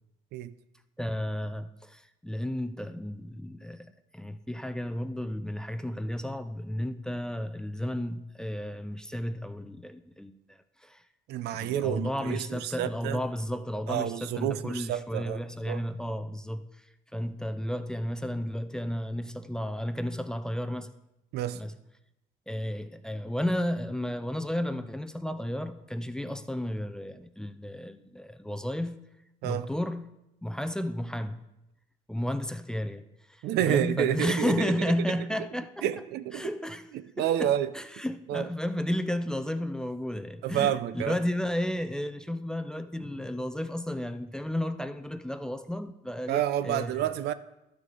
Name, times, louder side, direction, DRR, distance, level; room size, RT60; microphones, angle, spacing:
voice 1, 1.0-11.0 11.5-16.8 17.1-20.9 21.5-21.7 22.5-28.9 29.4-30.1 30.4-31.4 32.1-35.9 36.3-36.9 37.2-47.1, left 1 dB, 5° left, 0.4 m, -33 dB
voice 2, 11.3-13.2 13.9-15.4 15.7-15.8 21.3-21.6 29.4-29.7 33.4-34.7 35.8-36.5 36.9-37.7 38.3-38.5 40.4-41.2 46.3-47.3, right 11 dB, 75° right, 0.5 m, -29 dB
12.5 x 6.4 x 3.8 m
cardioid pair, 110°, 17 cm